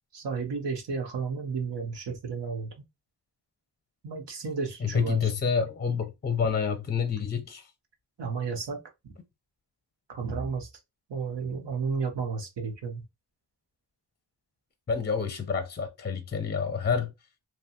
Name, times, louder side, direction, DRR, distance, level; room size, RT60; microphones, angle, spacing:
voice 1, 0.1-2.7 4.0-5.3 8.2-9.2 10.1-10.7 11.1-13.0, right 5 dB, 90° right, 0.7 m, -32 dB
voice 2, 4.8-7.7 14.9-17.1, left 6 dB, 25° left, 0.4 m, -28 dB
2.7 x 2.3 x 2.7 m
cardioid pair, 45°, 41 cm